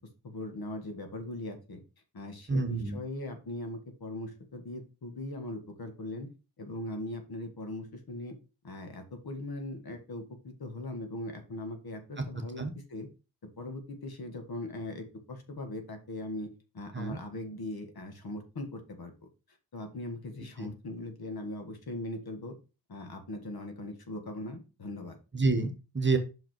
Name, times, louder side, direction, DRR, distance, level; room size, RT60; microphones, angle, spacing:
voice 1, 0.2-1.8 2.1-6.3 6.6-8.3 8.6-13.1 13.6-19.1 19.7-22.5 22.9-25.2, left 1 dB, 60° left, 5 dB, 1.7 m, -40 dB
voice 2, 2.5-3.0 12.6-12.7 16.9-17.2 20.6-20.7 25.3-26.2, right 3 dB, 25° right, 6 dB, 1.2 m, -28 dB
5.9 x 5.0 x 4.5 m, 0.30 s
wide cardioid pair, 110°, 43 cm